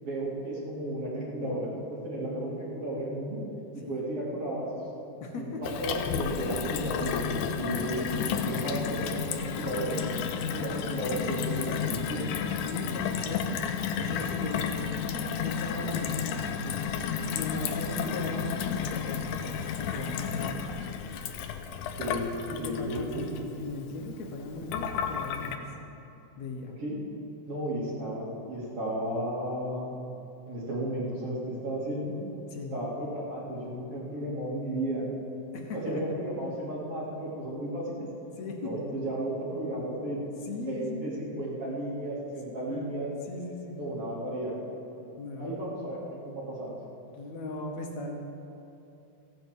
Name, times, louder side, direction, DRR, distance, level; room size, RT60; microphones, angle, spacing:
voice 1, 0.0-3.4 3.7-4.7 5.3-8.1 8.5-12.3 21.9-22.2 22.6-23.3 26.8-27.0 27.4-29.9 30.5-32.2 32.7-35.1 35.7-38.1 38.6-40.3 40.7-43.1 43.8-44.5 45.4-46.7, right 1 dB, 50° right, -5 dB, 3.6 m, -34 dB
voice 2, 5.2-5.6 7.8-8.5 12.6-14.8 15.4-20.4 22.5-25.5 26.4-26.7 32.5-32.8 35.5-36.2 38.4-38.7 40.4-41.1 42.5-42.9 43.3-43.8 45.2-45.8 47.1-48.2, left 2 dB, 70° left, 1 dB, 2.2 m, -38 dB
Gurgling / Water tap faucet / Sink (filling or washing), 5.6-25.6, left 7 dB, 90° left, 2.3 m, -32 dB
15.0 x 8.1 x 7.5 m, 2.8 s
omnidirectional pair, 3.5 m